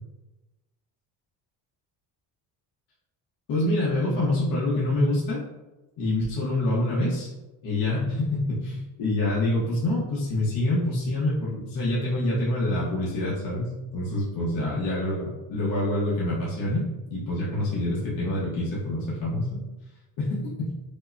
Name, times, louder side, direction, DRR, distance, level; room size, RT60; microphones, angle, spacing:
voice 1, 3.5-5.4 6.0-7.3 7.6-16.8 17.1-19.6 20.2-20.7, left 1 dB, 55° left, -6 dB, 1.1 m, -26 dB
5.2 x 2.1 x 2.7 m, 1.1 s
cardioid pair, 120°, 39 cm